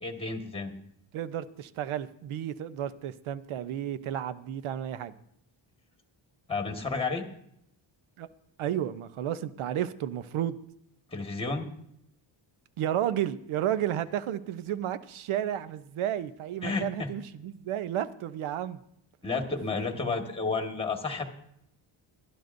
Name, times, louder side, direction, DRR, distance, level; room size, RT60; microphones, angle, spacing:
voice 1, 0.0-0.7 6.5-7.2 11.1-11.7 16.6-17.1 19.2-21.2, left 4 dB, 10° left, 4 dB, 1.4 m, -31 dB
voice 2, 1.1-5.1 8.2-8.3 8.6-10.6 12.8-18.8, right 11 dB, 90° right, 13 dB, 0.8 m, -32 dB
21.5 x 12.0 x 2.6 m, 0.75 s
wide cardioid pair, 160°, 48 cm